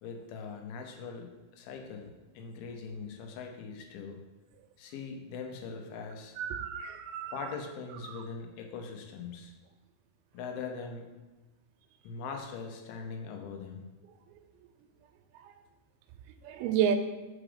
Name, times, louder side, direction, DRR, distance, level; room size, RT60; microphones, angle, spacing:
voice 1, 0.0-2.1 2.3-4.2 4.8-6.4 7.3-9.5 10.3-11.1 12.0-13.8, left 5 dB, 80° left, 3 dB, 2.6 m, -41 dB
voice 2, 6.4-7.5 8.1-8.2 15.4-15.5 16.4-17.0, right 8 dB, 85° right, 8 dB, 2.5 m, -31 dB
4.9 x 4.9 x 5.0 m, 1.1 s
omnidirectional pair, 4.4 m